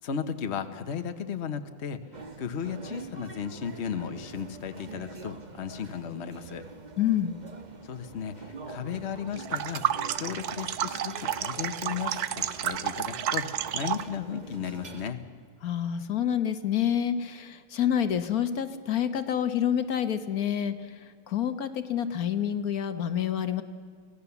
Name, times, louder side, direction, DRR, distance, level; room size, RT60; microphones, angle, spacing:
voice 1, 0.0-2.0 2.4-6.6 7.8-9.8 10.2-15.2, left 7 dB, 50° left, 8 dB, 1.3 m, -35 dB
sound 1, 2.1-15.1, right 3 dB, 30° right, 1.3 m, -45 dB
voice 2, 7.0-7.3 15.6-23.6, left 9 dB, 75° left, 10 dB, 1.5 m, -28 dB
sound 2, 9.4-14.1, right 10 dB, 85° right, 1.3 m, -31 dB
25.0 x 17.0 x 7.1 m, 2.1 s
omnidirectional pair, 1.6 m